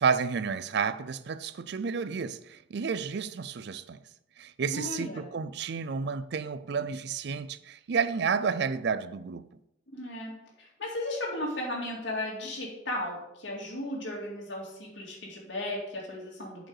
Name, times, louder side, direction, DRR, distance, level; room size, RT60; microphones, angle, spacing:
voice 1, 0.0-4.0 4.4-9.5, right 5 dB, 65° right, 0.4 m, -31 dB
voice 2, 4.7-5.3 9.9-10.3 10.6-16.7, left 1 dB, 75° left, 2.2 m, -35 dB
7.5 x 5.2 x 4.7 m
head